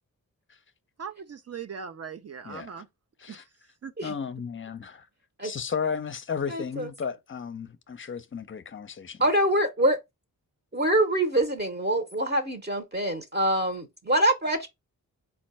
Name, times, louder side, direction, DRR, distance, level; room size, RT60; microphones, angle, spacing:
voice 1, 1.0-2.9 3.3-3.4 3.8-3.9, right 6 dB, 45° right, 0.5 m, -39 dB
voice 2, 2.4-2.8 3.2-3.4 4.0-5.1 5.4-9.2, left 6 dB, 35° left, 0.6 m, -34 dB
voice 3, 6.5-6.9 9.2-10.0 10.7-14.7, right 1 dB, 30° right, 0.9 m, -25 dB
4.3 x 2.3 x 4.2 m
cardioid pair, 70°, 35 cm